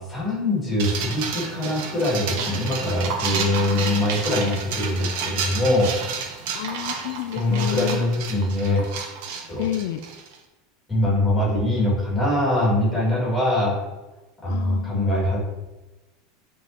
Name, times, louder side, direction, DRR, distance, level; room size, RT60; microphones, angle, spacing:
voice 1, 0.0-6.0 7.3-8.9 9.5-9.7 10.9-13.8 14.4-15.4, left 1 dB, 10° left, -5 dB, 2.1 m, -23 dB
sound 1, 0.8-10.3, right 5 dB, 60° right, 1.1 m, -30 dB
voice 2, 6.5-8.0 9.6-10.0 14.5-15.3, left 12 dB, 65° left, 9 dB, 0.3 m, -30 dB
9.3 x 3.7 x 2.8 m, 1.1 s
supercardioid pair, 170°, 0 cm